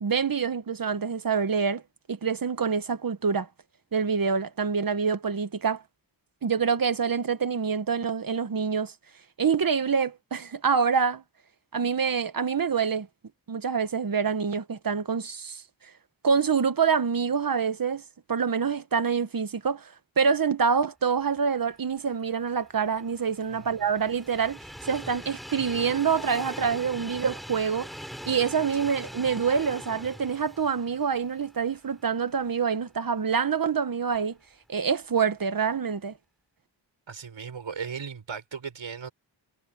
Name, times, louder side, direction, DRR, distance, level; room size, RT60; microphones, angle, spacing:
voice 1, 0.0-1.8 2.1-3.5 3.9-5.8 6.4-8.9 9.4-11.2 11.7-13.1 13.5-15.6 16.2-18.0 18.3-24.6 24.9-27.9 28.2-34.4 34.7-36.1, right 6 dB, 45° right, 1.4 m, -26 dB
Train, 22.4-32.5 32.9-33.0 34.1-34.2, equal, ahead, 7.5 m, -42 dB
voice 2, 37.1-39.1, right 6 dB, 75° right, 7.2 m, -37 dB
cardioid pair, 70°, 46 cm